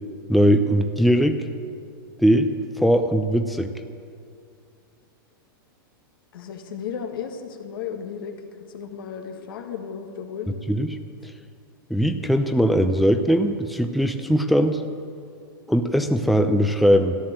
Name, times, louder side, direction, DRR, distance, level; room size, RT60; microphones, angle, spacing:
voice 1, 0.3-1.4 2.2-3.7 10.7-11.0 11.2-11.3 11.9-14.8 15.7-17.2, equal, ahead, 6 dB, 0.6 m, -20 dB
voice 2, 6.3-8.3 8.6-10.6, left 7 dB, 70° left, 4 dB, 2.0 m, -34 dB
13.5 x 11.5 x 7.6 m, 2.3 s
hypercardioid pair, 125°, 12 cm